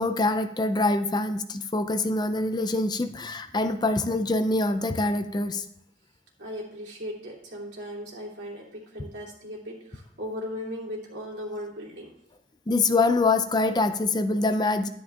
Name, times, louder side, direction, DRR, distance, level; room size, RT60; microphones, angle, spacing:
voice 1, 0.0-5.6 12.7-14.9, left 2 dB, 25° left, 9 dB, 0.5 m, -25 dB
voice 2, 6.4-12.1, equal, 90° right, -3 dB, 2.7 m, -37 dB
11.0 x 9.9 x 2.5 m, 0.74 s
head